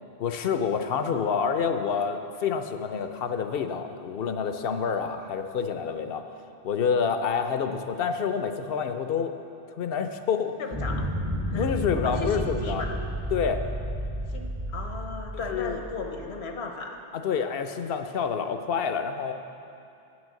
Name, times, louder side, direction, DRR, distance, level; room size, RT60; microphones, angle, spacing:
voice 1, 0.2-6.2 6.6-9.3 9.8-10.5 11.5-12.8 13.3-13.6 15.5-15.8 17.1-19.3, left 6 dB, 70° left, 8 dB, 0.8 m, -28 dB
voice 2, 1.0-1.6 10.6-11.1 11.4-11.7 12.0-12.9 14.3-17.0, left 3 dB, 85° left, 4 dB, 1.2 m, -36 dB
sound 1, 10.7-16.5, equal, 20° right, 0.7 m, -32 dB
9.6 x 6.3 x 7.5 m, 2.6 s
omnidirectional pair, 1.1 m